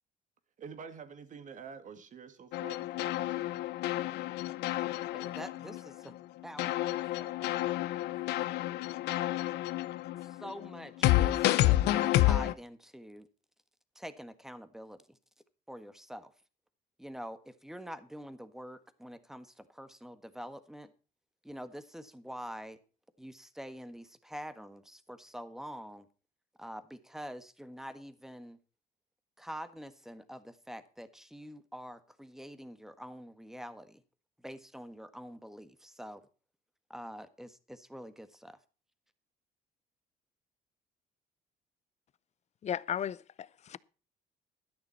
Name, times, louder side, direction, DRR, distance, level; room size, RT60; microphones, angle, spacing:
voice 1, 0.6-3.6, right 6 dB, 50° right, 2.1 m, -48 dB
sound 1, 2.5-6.2 6.6-12.5, left 15 dB, 85° left, 0.8 m, -29 dB
voice 2, 5.1-6.1 6.4-8.4 9.1-9.5 10.2-13.3 13.9-15.2 15.7-16.3 17.0-20.9 21.4-22.8 23.2-26.1 26.6-28.6 29.4-34.0 34.4-36.2 36.9-38.6, equal, ahead, 1.5 m, -46 dB
voice 3, 42.6-43.8, left 9 dB, 40° left, 0.6 m, -35 dB
12.5 x 10.5 x 4.2 m
cardioid pair, 110°, 17 cm